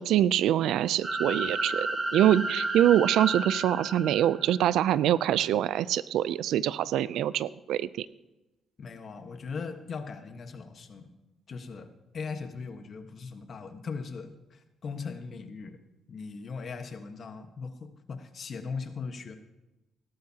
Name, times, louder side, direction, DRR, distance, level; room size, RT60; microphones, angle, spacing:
voice 1, 0.0-8.1, right 11 dB, 80° right, 18 dB, 0.4 m, -25 dB
sound 1, 1.0-4.8, right 2 dB, 25° right, 1.7 m, -32 dB
voice 2, 8.8-11.1 11.5-15.8 16.1-19.4, left 5 dB, 50° left, 7 dB, 1.3 m, -39 dB
17.5 x 11.5 x 2.9 m, 1.0 s
cardioid pair, 95°, 0 cm